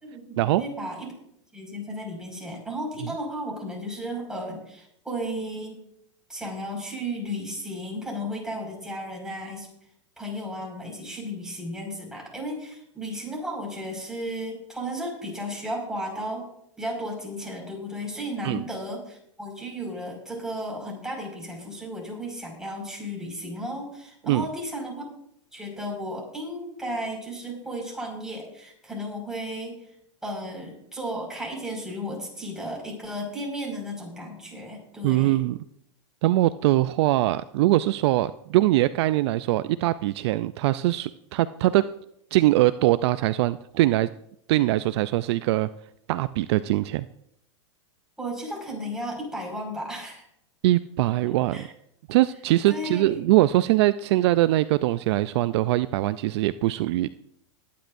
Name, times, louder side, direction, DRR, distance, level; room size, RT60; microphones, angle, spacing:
voice 1, 0.0-1.1 1.5-5.8 6.3-9.7 10.2-16.5 16.8-25.1 25.5-29.8 30.2-35.4 48.2-50.3 51.3-51.7 52.7-53.2, equal, 5° right, -1 dB, 5.3 m, -34 dB
voice 2, 35.0-35.6 36.2-41.9 42.3-44.1 44.5-45.7 46.1-47.1 50.6-51.7 52.1-57.1, right 16 dB, 60° right, 14 dB, 0.4 m, -22 dB
21.0 x 10.5 x 2.6 m, 0.73 s
hypercardioid pair, 125°, 16 cm